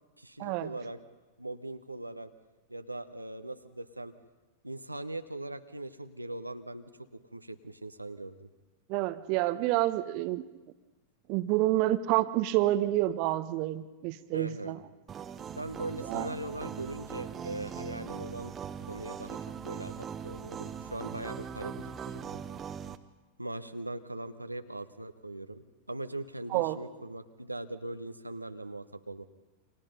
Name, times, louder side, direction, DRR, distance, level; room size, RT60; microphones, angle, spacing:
voice 1, 0.2-1.0 1.4-2.3 2.7-4.1 4.6-8.5 14.3-14.8 15.6-18.5 18.8-19.4 19.6-22.4 23.4-29.3, right 2 dB, 85° right, 8 dB, 1.1 m, -40 dB
voice 2, 8.9-10.4 11.3-14.8 16.0-16.3 26.5-26.8, right 16 dB, 45° right, 12 dB, 1.1 m, -28 dB
sound 1, 15.1-23.0, right 7 dB, 25° right, 1.2 m, -40 dB
29.0 x 26.0 x 5.4 m, 1.1 s
figure-of-eight pair, 90°, 0 cm